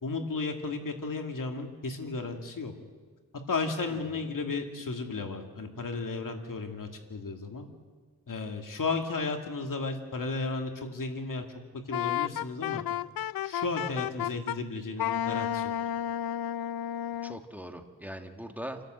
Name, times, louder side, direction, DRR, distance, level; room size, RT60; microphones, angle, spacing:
voice 1, 0.0-2.7 3.5-7.7 8.3-11.4 11.7-12.8 13.4-15.7, left 3 dB, 65° left, 4 dB, 2.4 m, -34 dB
voice 2, 3.9-4.3 17.2-18.8, equal, 5° right, 5 dB, 1.8 m, -41 dB
Wind instrument woodwind instrument, 11.9-14.6 15.0-17.4, left 11 dB, 80° left, 0.5 m, -32 dB
28.0 x 11.5 x 7.8 m, 1.5 s
wide cardioid pair, 70°, 35 cm